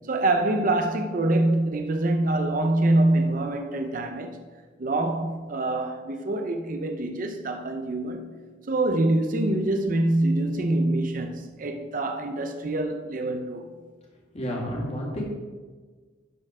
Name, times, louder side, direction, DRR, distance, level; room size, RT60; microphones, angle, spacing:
voice 1, 0.1-4.4 4.8-8.3 8.7-13.7, right 2 dB, 45° right, 0.6 m, -25 dB
voice 2, 14.3-15.2, equal, 35° left, 2.0 m, -30 dB
12.0 x 4.4 x 4.9 m
head